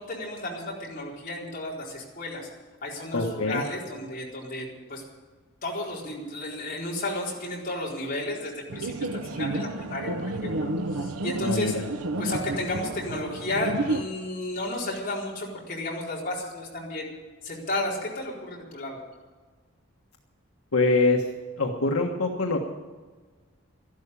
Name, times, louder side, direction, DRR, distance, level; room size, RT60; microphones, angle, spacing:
voice 1, 0.0-2.5 2.8-5.0 5.6-11.7 12.2-17.1 17.4-19.0, left 1 dB, 40° left, -4 dB, 4.3 m, -33 dB
voice 2, 3.1-3.6 11.4-11.8 20.7-21.2 21.6-22.6, left 3 dB, 80° left, 1 dB, 1.5 m, -24 dB
sound 1, 8.7-14.0, right 2 dB, 90° right, 0.9 m, -31 dB
13.0 x 12.0 x 8.5 m, 1.4 s
head